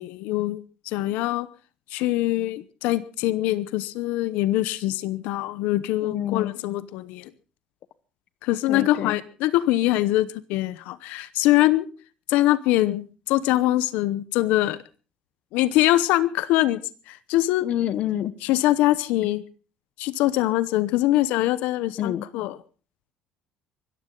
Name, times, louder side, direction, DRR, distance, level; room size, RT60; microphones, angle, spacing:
voice 1, 0.0-1.5 1.9-7.3 8.4-11.9 12.3-14.8 15.5-16.8 17.1-17.7 18.4-19.4 20.0-22.6, left 16 dB, 80° left, 16 dB, 0.9 m, -23 dB
voice 2, 6.0-6.5 8.7-9.2 17.6-18.3 22.0-22.3, left 11 dB, 50° left, 17 dB, 0.9 m, -27 dB
24.0 x 14.0 x 3.9 m, 0.36 s
cardioid pair, 155°, 3 cm